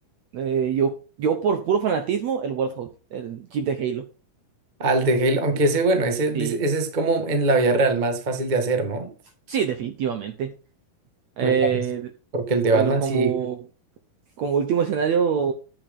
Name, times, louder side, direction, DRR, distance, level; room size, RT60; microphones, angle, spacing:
voice 1, 0.3-0.9 1.2-4.0 6.3-6.6 9.5-10.5 11.4-12.1 12.7-13.7 14.4-15.5, right 7 dB, 70° right, 1.7 m, -24 dB
voice 2, 4.8-9.1 11.4-11.7 12.3-13.5, right 2 dB, 45° right, 0.5 m, -22 dB
9.6 x 9.2 x 3.7 m
omnidirectional pair, 4.4 m